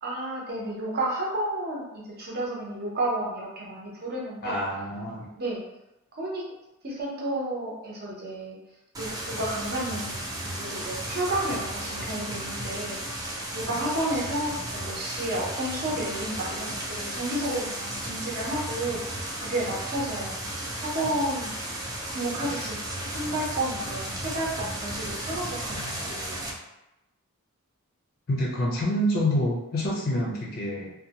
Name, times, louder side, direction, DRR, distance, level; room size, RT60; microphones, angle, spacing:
voice 1, 0.0-4.6 5.4-5.6 6.1-6.5 6.8-8.6 9.0-13.0 13.5-20.3 20.8-21.5 22.1-26.0 26.2-26.6, right 1 dB, 45° right, -4 dB, 0.7 m, -31 dB
voice 2, 4.4-5.3 28.3-30.9, equal, 45° left, -3 dB, 0.4 m, -27 dB
sound 1, 8.9-26.5, right 1 dB, 15° right, 0.4 m, -34 dB
2.6 x 2.2 x 2.8 m, 0.90 s
head